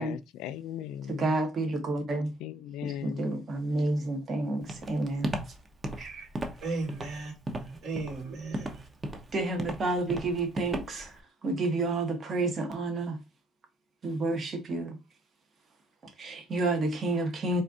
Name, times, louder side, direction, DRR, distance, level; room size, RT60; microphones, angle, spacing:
voice 1, 0.0-1.3 2.4-3.4, left 10 dB, 80° left, 0.4 m, -38 dB
voice 2, 1.1-2.3 2.8-5.3 6.0-6.3 9.3-13.2 14.0-15.0 16.2-17.6, right 2 dB, 40° right, 1.1 m, -30 dB
Walk footsteps, 4.7-11.2, right 1 dB, 20° right, 0.8 m, -36 dB
voice 3, 6.6-8.8, right 3 dB, 60° right, 2.4 m, -36 dB
4.2 x 2.5 x 3.7 m
cardioid pair, 105°, 0 cm